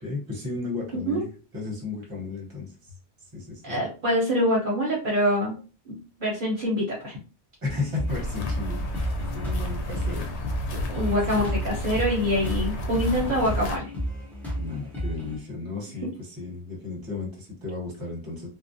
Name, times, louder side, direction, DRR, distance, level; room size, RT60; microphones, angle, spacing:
voice 1, 0.0-2.9 3.3-3.8 7.6-10.3 11.3-11.4 14.5-18.5, left 3 dB, 20° right, -3 dB, 0.8 m, -34 dB
voice 2, 3.6-5.5 5.9-7.2 10.7-13.9 16.0-16.1, equal, 55° right, -3 dB, 0.8 m, -25 dB
sound 1, 7.6-15.4, equal, ahead, 0.5 m, -33 dB
sound 2, 8.1-13.8, left 1 dB, 85° left, 0.9 m, -32 dB
2.3 x 2.1 x 2.5 m, 0.36 s
omnidirectional pair, 1.1 m